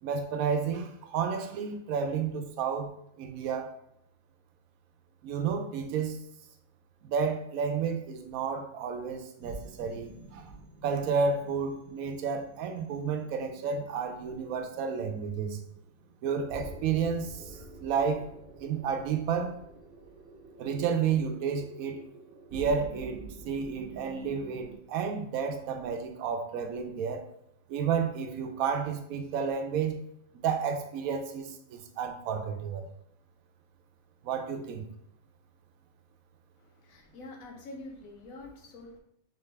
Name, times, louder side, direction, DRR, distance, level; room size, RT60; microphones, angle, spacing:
voice 1, 0.0-2.9 3.2-3.7 5.2-6.2 7.0-10.5 10.8-15.6 16.2-18.3 18.6-19.5 20.6-22.0 22.5-27.2 27.7-30.0 30.3-32.8 34.2-34.9, right 6 dB, 90° right, 6 dB, 1.0 m, -31 dB
sound 1, 9.4-24.8, right 2 dB, 50° right, 1.0 m, -48 dB
voice 2, 36.6-39.0, left 2 dB, 75° left, 2 dB, 1.2 m, -46 dB
3.7 x 3.4 x 3.3 m, 0.76 s
omnidirectional pair, 1.5 m